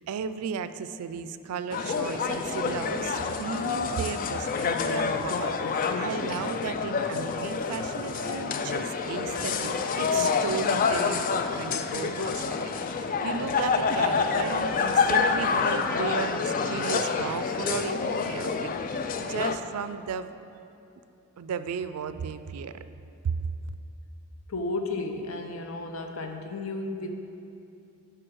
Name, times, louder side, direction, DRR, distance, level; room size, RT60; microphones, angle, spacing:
voice 1, 0.0-5.5 5.9-20.4 21.4-22.8 23.2-23.5, right 6 dB, 90° right, 12 dB, 0.4 m, -35 dB
sound 1, 1.7-19.6, left 5 dB, 40° left, 0.3 m, -27 dB
voice 2, 24.5-27.1, left 2 dB, 65° left, 5 dB, 0.7 m, -33 dB
7.6 x 4.7 x 6.2 m, 2.7 s
head